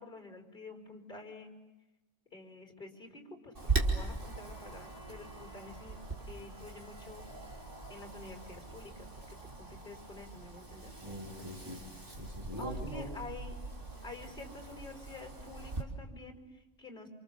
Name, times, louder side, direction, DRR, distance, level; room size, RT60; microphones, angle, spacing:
voice 1, 0.0-1.5 2.3-6.0 6.3-7.2 7.9-10.9 11.4-11.5 12.6-13.6 14.0-17.1, left 3 dB, 45° left, 4 dB, 5.1 m, -49 dB
Wind, 3.5-15.8, right 3 dB, 45° right, 3.7 m, -40 dB
Bowed string instrument, 3.8-9.5, left 1 dB, 60° right, 6.9 m, -61 dB
voice 2, 11.0-13.1, equal, 15° right, -3 dB, 5.4 m, -43 dB
29.0 x 28.5 x 7.2 m, 1.0 s
omnidirectional pair, 1.3 m